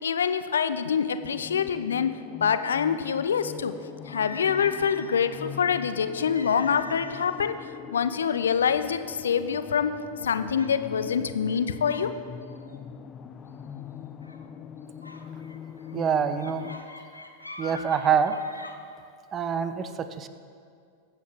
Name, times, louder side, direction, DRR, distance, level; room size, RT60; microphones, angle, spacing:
voice 1, 0.0-2.1 2.4-3.7 4.1-7.6 7.9-9.9 10.2-12.1, left 7 dB, 65° left, 11 dB, 0.6 m, -25 dB
sound 1, 1.2-16.8, left 8 dB, 25° left, 0.6 m, -42 dB
sound 2, 4.1-5.3 6.3-7.5 7.8-8.0 8.7-8.8 9.3-9.8 10.5-10.8 11.4-12.1 12.4-12.7 14.2-14.5 15.0-18.7, left 2 dB, 85° left, 0.9 m, -43 dB
voice 2, 15.9-16.7 17.6-18.4 19.3-20.3, right 7 dB, 25° right, 11 dB, 0.8 m, -25 dB
21.5 x 8.4 x 3.6 m, 2.3 s
figure-of-eight pair, 90°, 0 cm